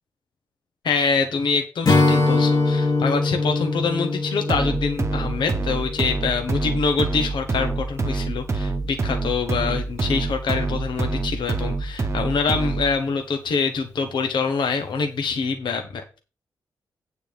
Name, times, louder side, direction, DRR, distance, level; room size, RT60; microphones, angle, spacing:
voice 1, 0.8-16.0, left 5 dB, 80° left, 5 dB, 1.3 m, -25 dB
Strum, 1.8-7.3, left 3 dB, 50° left, 1.8 m, -23 dB
sound 1, 4.5-13.0, right 3 dB, 35° right, 0.9 m, -26 dB
9.0 x 4.3 x 7.1 m, 0.32 s
wide cardioid pair, 125°, 8 cm